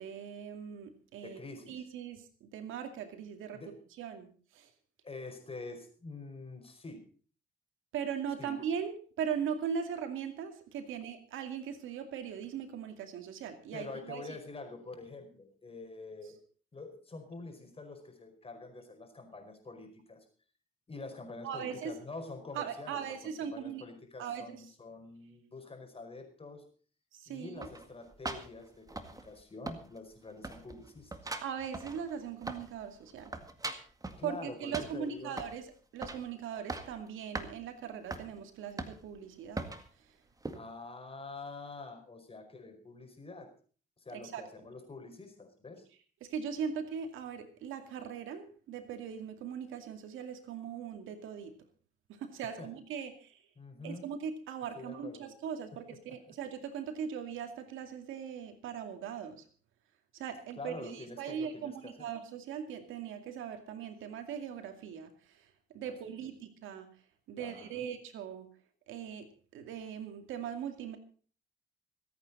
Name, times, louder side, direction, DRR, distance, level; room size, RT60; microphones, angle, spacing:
voice 1, 0.0-1.4 1.7-3.6 4.0-4.7 7.9-14.4 21.4-22.0 22.5-23.8 24.2-24.6 27.1-27.7 31.4-33.3 34.2-39.7 44.1-44.4 46.2-51.5 52.1-53.4 53.8-59.4 60.1-66.9 67.3-68.5 68.9-69.3 69.5-71.0, right 7 dB, 85° right, 7 dB, 2.4 m, -40 dB
voice 2, 1.2-1.8 3.5-3.8 5.0-7.0 8.4-8.6 13.7-16.4 16.7-20.2 20.9-26.7 27.3-31.3 34.2-35.4 40.5-43.5 44.0-45.9 52.4-52.7 53.6-54.1 54.7-55.3 55.7-55.8 56.1-56.3 60.6-62.1 67.4-67.9, left 3 dB, 30° left, 5 dB, 5.0 m, -46 dB
sound 1, 27.6-29.4 29.7-30.2 30.4-32.8 33.1-34.2 34.7-35.6 36.0-36.3 36.5-37.0 37.3-37.5 38.1-38.3 38.8-39.2 39.6-39.9 40.4-40.6, right 2 dB, 15° right, 1.9 m, -40 dB
25.5 x 9.0 x 4.1 m, 0.41 s
cardioid pair, 90°, 20 cm